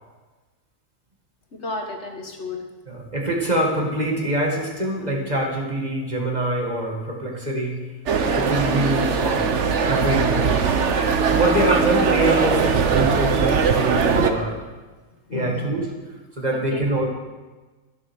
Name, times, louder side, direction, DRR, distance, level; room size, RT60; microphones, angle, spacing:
voice 1, 1.5-2.6 8.7-8.9 11.5-11.7 15.3-15.7 16.7-17.0, left 2 dB, 55° left, 3 dB, 1.7 m, -32 dB
voice 2, 2.9-7.8 8.3-9.5 9.9-10.7 11.3-14.6 15.3-15.9 16.4-17.1, right 1 dB, 30° right, -1 dB, 2.3 m, -24 dB
sound 1, 8.1-14.3, right 5 dB, 60° right, 1.3 m, -20 dB
12.5 x 11.0 x 6.4 m, 1.3 s
omnidirectional pair, 1.4 m